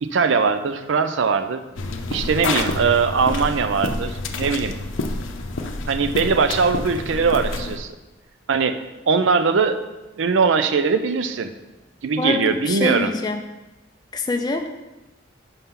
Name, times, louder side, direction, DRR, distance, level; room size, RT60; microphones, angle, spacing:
voice 1, 0.0-1.6 2.1-4.7 5.9-7.9 8.5-11.5 12.0-13.1, right 5 dB, 75° right, 10 dB, 0.4 m, -21 dB
sound 1, 1.8-7.8, left 2 dB, 80° left, 0.6 m, -28 dB
voice 2, 12.2-13.4 14.1-14.7, left 3 dB, 20° left, 4 dB, 0.3 m, -25 dB
5.7 x 5.5 x 3.7 m, 1.1 s
head